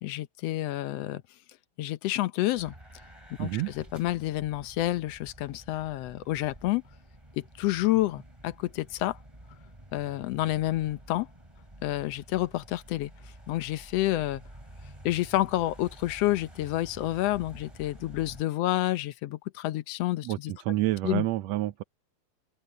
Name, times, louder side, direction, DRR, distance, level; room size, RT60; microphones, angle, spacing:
voice 1, 0.0-1.2 1.8-2.7 3.4-6.8 7.4-9.2 9.9-11.3 11.8-13.1 13.5-14.4 15.0-20.5 21.0-21.2, left 16 dB, 70° left, 1.6 m, -29 dB
sound 1, 2.5-18.4, right 1 dB, 10° right, 3.6 m, -50 dB
voice 2, 3.4-3.7 20.2-21.8, right 16 dB, 75° right, 1.8 m, -28 dB
omnidirectional pair, 3.4 m